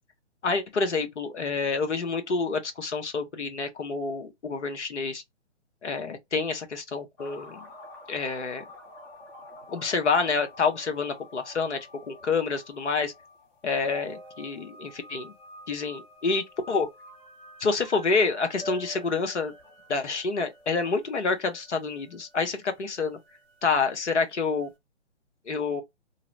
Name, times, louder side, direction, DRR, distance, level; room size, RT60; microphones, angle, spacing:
voice 1, 0.4-5.2 5.8-7.6 8.1-8.6 9.7-11.8 12.1-13.1 13.6-15.3 15.7-16.9 17.6-19.5 19.9-23.2 23.6-24.7 25.5-25.8, left 4 dB, 70° left, 0.9 m, -28 dB
sound 1, 7.2-24.4 24.6-24.7, equal, 20° left, 0.7 m, -48 dB
2.8 x 2.0 x 2.6 m
figure-of-eight pair, 135°, 36 cm